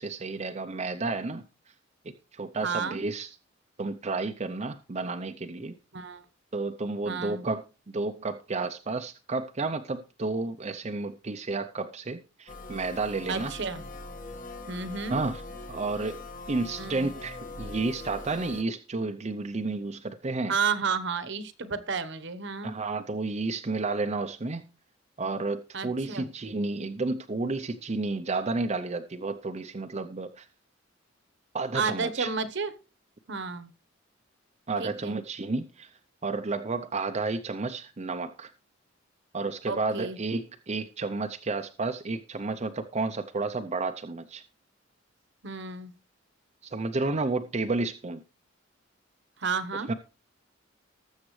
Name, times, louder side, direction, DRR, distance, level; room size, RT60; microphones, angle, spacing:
voice 1, 0.0-1.4 2.3-3.3 3.8-5.7 6.5-7.6 7.9-13.5 15.1-15.4 15.7-16.2 16.5-20.6 22.6-24.7 25.2-30.5 31.5-32.3 34.7-35.9 36.2-38.5 39.3-44.4 46.6-48.2 49.7-49.9, right 3 dB, 35° right, 6 dB, 0.6 m, -31 dB
voice 2, 2.6-3.0 5.9-6.2 7.0-7.4 13.3-13.8 14.7-15.2 16.8-17.1 20.5-22.8 25.7-26.3 31.7-32.7 33.3-33.7 34.8-35.2 39.7-40.2 45.4-45.9 49.4-49.9, right 5 dB, 60° right, 13 dB, 1.0 m, -31 dB
sound 1, 12.5-18.6, left 2 dB, 45° left, 1.4 m, -41 dB
19.5 x 7.3 x 3.2 m, 0.33 s
head